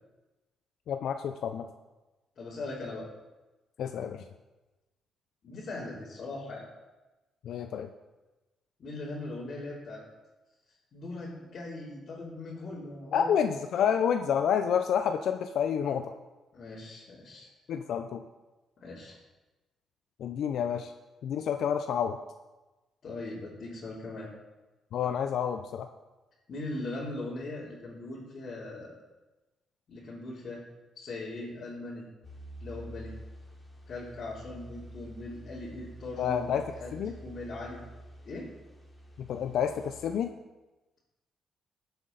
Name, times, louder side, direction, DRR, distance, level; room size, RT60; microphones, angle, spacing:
voice 1, 0.9-1.7 3.8-4.2 7.4-7.9 13.1-16.1 17.7-18.2 20.2-20.9 21.2-22.2 24.9-25.9 36.2-36.6 36.9-37.1 39.2-40.3, left 8 dB, 70° left, 7 dB, 0.6 m, -29 dB
voice 2, 2.4-3.1 5.4-6.7 8.8-10.0 10.9-13.3 13.8-13.9 16.5-17.5 18.8-19.2 23.0-24.3 26.5-28.9 29.9-30.6 31.0-32.0 32.6-33.1 33.9-37.8 38.3-38.5, left 2 dB, 50° left, -7 dB, 3.3 m, -40 dB
sound 1, 32.2-40.2, equal, 15° left, 3.2 m, -48 dB
15.0 x 7.9 x 4.0 m, 1.1 s
cardioid pair, 90°, 0 cm